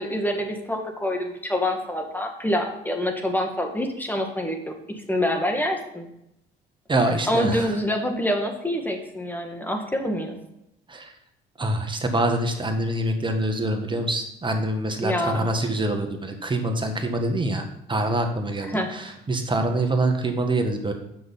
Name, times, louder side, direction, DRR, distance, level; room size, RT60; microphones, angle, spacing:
voice 1, 0.0-4.6 5.1-6.1 7.3-10.4 15.0-15.5 18.7-18.9, left 1 dB, 10° left, 3 dB, 2.0 m, -26 dB
voice 2, 6.9-7.7 10.9-11.1 11.6-20.9, right 1 dB, 25° right, 5 dB, 1.7 m, -25 dB
7.8 x 6.1 x 5.7 m, 0.82 s
supercardioid pair, 65°, 19 cm